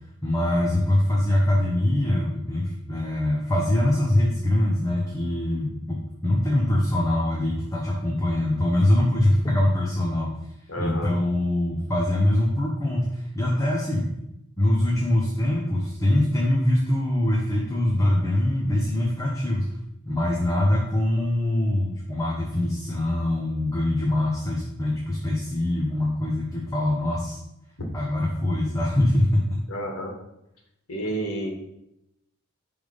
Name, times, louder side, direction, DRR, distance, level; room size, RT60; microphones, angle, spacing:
voice 1, 0.2-10.3 10.8-14.1 14.6-19.8 20.0-27.4 27.9-29.6, left 1 dB, 15° left, -3 dB, 1.0 m, -23 dB
voice 2, 10.7-11.1 29.7-30.1 30.9-31.5, right 1 dB, 90° left, 1 dB, 1.9 m, -30 dB
10.0 x 3.6 x 5.2 m, 0.82 s
head